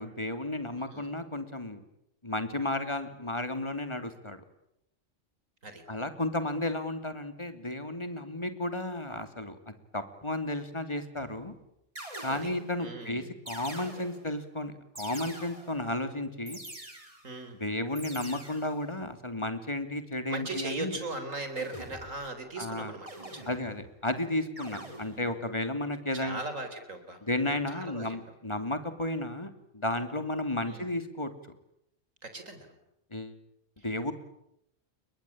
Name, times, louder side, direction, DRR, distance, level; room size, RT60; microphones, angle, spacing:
voice 1, 0.0-1.8 2.2-4.4 5.9-11.5 12.2-16.6 17.6-21.0 22.6-22.9 23.5-26.4 27.2-31.3 33.1-33.4 33.8-34.1, left 1 dB, 20° left, 8 dB, 2.8 m, -33 dB
sound 1, 11.2-11.5 12.0-12.8 13.5-14.4 15.0-15.9 16.5-17.4 18.0-18.8 21.6-22.3 23.1-23.9 24.6-25.3, right 1 dB, 25° right, 3.9 m, -45 dB
voice 2, 12.0-12.5 12.8-13.3 17.2-17.6 20.3-23.6 24.7-25.4 26.1-28.2 30.7-30.8 32.2-32.7 33.8-33.9, right 2 dB, 80° right, 8 dB, 4.4 m, -39 dB
29.0 x 22.5 x 8.7 m, 0.80 s
omnidirectional pair, 1.3 m